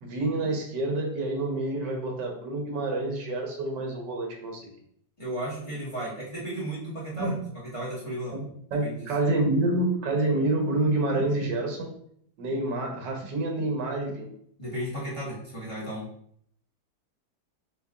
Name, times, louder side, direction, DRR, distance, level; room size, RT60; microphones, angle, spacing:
voice 1, 0.0-4.6 7.1-7.4 8.3-8.4 8.7-11.9 12.4-14.3, right 2 dB, 85° right, 1 dB, 1.6 m, -28 dB
voice 2, 5.2-7.3 7.6-8.3 8.8-9.0 14.6-16.1, right 1 dB, 20° left, -7 dB, 1.1 m, -34 dB
6.4 x 2.6 x 2.4 m, 0.67 s
omnidirectional pair, 1.9 m